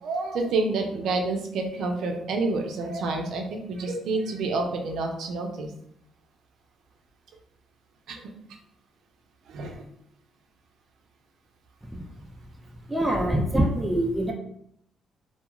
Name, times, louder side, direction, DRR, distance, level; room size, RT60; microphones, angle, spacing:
voice 1, 0.0-5.7 8.1-8.2 9.5-9.8, right 3 dB, 75° right, 3 dB, 0.5 m, -28 dB
voice 2, 12.9-14.3, right 1 dB, 10° right, 0 dB, 0.4 m, -24 dB
2.3 x 2.3 x 3.0 m, 0.73 s
cardioid pair, 90°, 0 cm